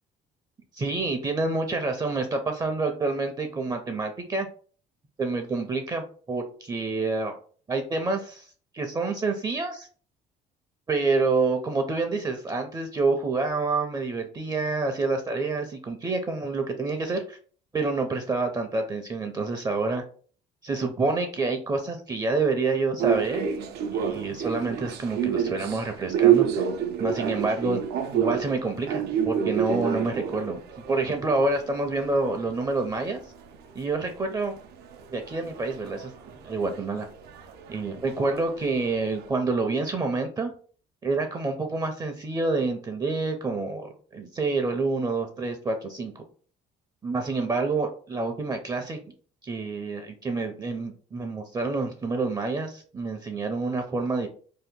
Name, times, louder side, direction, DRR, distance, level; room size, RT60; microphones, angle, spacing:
voice 1, 0.7-4.5 5.2-7.4 7.7-8.5 8.7-9.9 10.9-17.4 17.7-20.0 20.6-23.5 23.9-26.7 27.0-27.8 28.1-30.6 30.9-33.2 33.7-34.5 35.1-37.1 37.7-40.5 41.0-46.2 47.0-49.0 49.4-54.3, right 3 dB, 25° right, 5 dB, 0.5 m, -28 dB
sound 1, 23.0-33.8 34.1-39.3, right 9 dB, 75° right, 0.5 m, -29 dB
2.8 x 2.2 x 3.5 m, 0.43 s
cardioid pair, 110°, 17 cm